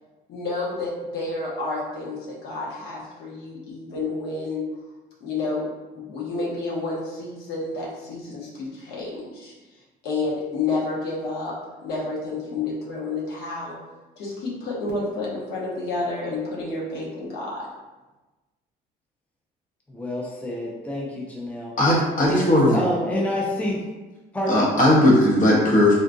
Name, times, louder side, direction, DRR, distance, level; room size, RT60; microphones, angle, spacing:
voice 1, 0.3-4.7 5.2-9.5 10.0-13.8 14.1-17.7, left 3 dB, 75° left, -5 dB, 1.0 m, -30 dB
voice 2, 19.9-21.8 22.3-23.8 24.3-24.7, left 1 dB, 10° left, -3 dB, 0.5 m, -28 dB
voice 3, 21.8-22.8 24.5-25.9, left 1 dB, 50° left, -4 dB, 1.1 m, -17 dB
3.7 x 2.3 x 2.6 m, 1.1 s
cardioid pair, 110°, 17 cm